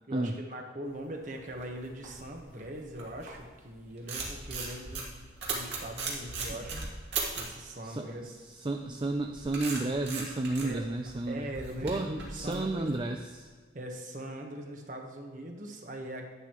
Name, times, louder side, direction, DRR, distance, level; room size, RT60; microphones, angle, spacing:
voice 1, 0.1-7.1 7.4-8.3 10.6-10.9 11.3-12.9 13.7-16.2, right 1 dB, 45° right, 3 dB, 1.3 m, -41 dB
sound 1, 1.2-3.5 3.8-7.6 8.8-13.3, right 4 dB, 75° right, 2.5 m, -38 dB
voice 2, 8.6-11.4 11.8-13.5, right 2 dB, 25° right, 4 dB, 0.4 m, -32 dB
11.0 x 10.0 x 3.1 m, 1.5 s
head